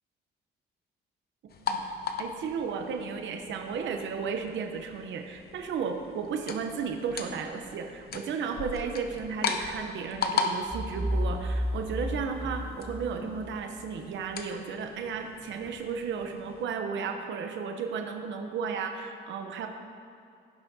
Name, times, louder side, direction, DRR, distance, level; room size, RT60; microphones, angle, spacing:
voice 1, 1.4-1.8 2.2-19.7, right 6 dB, 70° right, 4 dB, 0.7 m, -34 dB
sound 1, 1.5-16.6, left 5 dB, 50° left, 0.7 m, -38 dB
sound 2, 10.7-13.5, equal, 10° right, 0.4 m, -32 dB
16.0 x 5.7 x 2.7 m, 2.5 s
cardioid pair, 90°, 20 cm